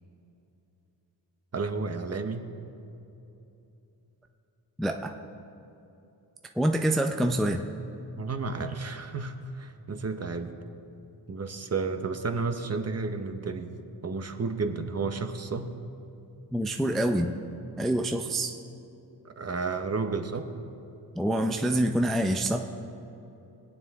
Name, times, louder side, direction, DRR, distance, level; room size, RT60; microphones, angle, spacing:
voice 1, 1.5-2.5 8.2-10.6 11.3-13.7 14.0-15.7 19.2-20.5, right 4 dB, 35° right, 7 dB, 0.8 m, -32 dB
voice 2, 4.8-5.1 6.6-7.6 16.5-17.3 17.8-18.6 21.2-22.6, right 1 dB, ahead, 4 dB, 0.4 m, -26 dB
21.0 x 9.0 x 3.5 m, 2.9 s
wide cardioid pair, 120°, 43 cm